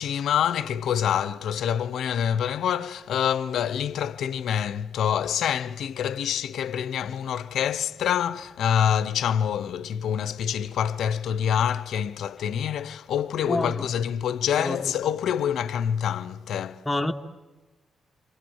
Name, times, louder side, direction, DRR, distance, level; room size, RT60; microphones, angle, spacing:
voice 1, 0.0-16.8, left 9 dB, 75° left, 0.9 m, -26 dB
voice 2, 13.4-13.9 14.6-15.0 16.9-17.1, left 1 dB, 15° left, 1.9 m, -28 dB
29.5 x 26.0 x 7.3 m
supercardioid pair, 45°, 0 cm